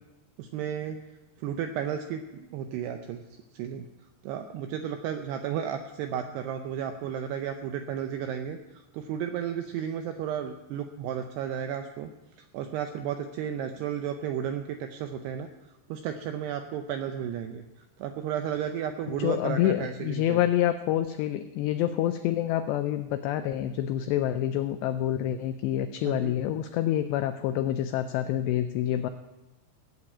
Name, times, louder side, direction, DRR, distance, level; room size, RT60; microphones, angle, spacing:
voice 1, 0.4-1.0 1.4-3.2 3.5-3.9 4.2-12.1 12.5-15.5 15.9-17.7 18.0-20.4 26.0-26.3, right 9 dB, 85° right, 6 dB, 2.4 m, -33 dB
voice 2, 19.1-29.1, left 12 dB, 85° left, 9 dB, 2.4 m, -27 dB
17.0 x 8.0 x 8.5 m, 1.1 s
omnidirectional pair, 5.5 m